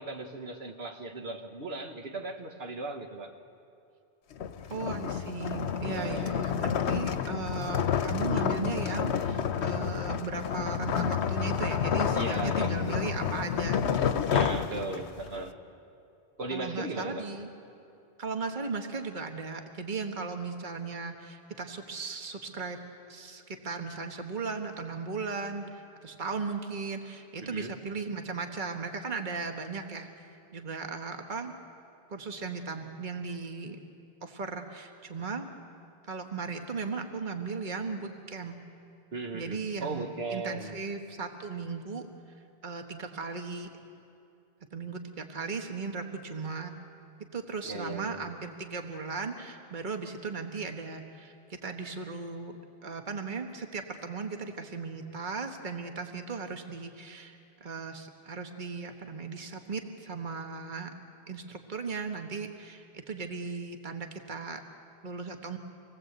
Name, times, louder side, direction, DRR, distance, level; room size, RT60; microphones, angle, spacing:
voice 1, 0.0-3.3 5.8-6.4 12.1-13.1 14.3-15.6 16.4-17.3 27.4-27.7 39.1-40.7 47.7-48.2, right 2 dB, 65° right, 3 dB, 1.6 m, -37 dB
sound 1, 4.3-15.3, left 8 dB, 85° left, 1.1 m, -29 dB
voice 2, 4.7-15.0 16.5-17.5 18.2-22.8 23.1-30.1 30.5-31.5 32.1-33.8 34.2-35.4 36.1-38.6 39.3-42.1 42.6-43.7 44.7-46.7 47.3-60.9 61.3-64.6 65.0-65.6, right 4 dB, 45° right, 4 dB, 1.6 m, -37 dB
26.5 x 18.5 x 8.0 m, 2.6 s
omnidirectional pair, 1.1 m